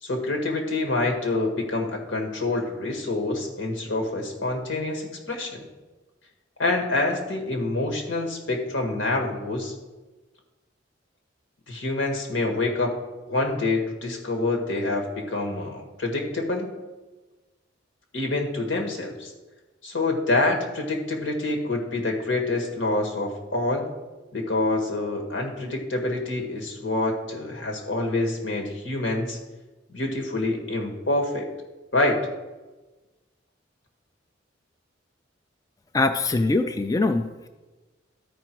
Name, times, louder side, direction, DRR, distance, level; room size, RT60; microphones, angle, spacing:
voice 1, 0.0-5.7 6.6-9.7 11.7-12.9 13.3-16.7 18.1-19.3 19.8-23.9 24.3-29.4 29.9-31.5 31.9-32.2, left 2 dB, 80° left, 2 dB, 1.7 m, -26 dB
voice 2, 35.9-37.5, left 2 dB, 20° left, 8 dB, 0.3 m, -23 dB
12.5 x 5.0 x 4.6 m, 1.2 s
head